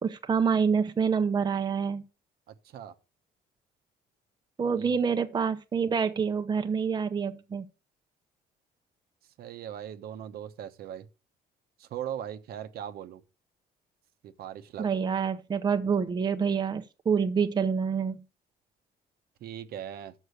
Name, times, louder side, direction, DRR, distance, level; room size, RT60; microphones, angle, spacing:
voice 1, 0.0-2.0 4.6-7.7 14.8-18.2, right 6 dB, 25° right, 0.8 m, -27 dB
voice 2, 2.5-2.9 4.7-4.9 9.4-11.1 11.8-13.2 14.2-14.9 19.4-20.1, right 10 dB, 65° right, 1.0 m, -39 dB
6.5 x 6.4 x 6.5 m
cardioid pair, 110°, 17 cm